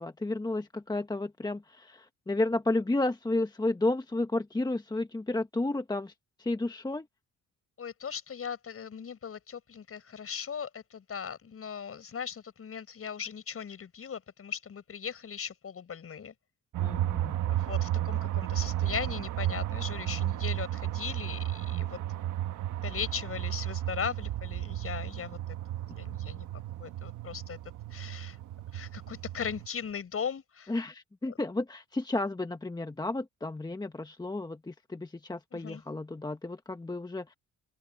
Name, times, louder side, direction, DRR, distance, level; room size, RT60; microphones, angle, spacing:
voice 1, 0.0-6.1 6.4-7.1 16.8-17.4 30.7-37.3, left 2 dB, 15° left, 1.2 m, -32 dB
voice 2, 7.8-16.3 17.5-22.3 22.8-25.4 25.7-27.6 27.9-28.4 28.7-30.7 35.5-35.8, left 7 dB, 50° left, 6.5 m, -38 dB
sound 1, 16.7-29.7, right 13 dB, 80° right, 1.4 m, -33 dB
open air
cardioid pair, 90°, 30 cm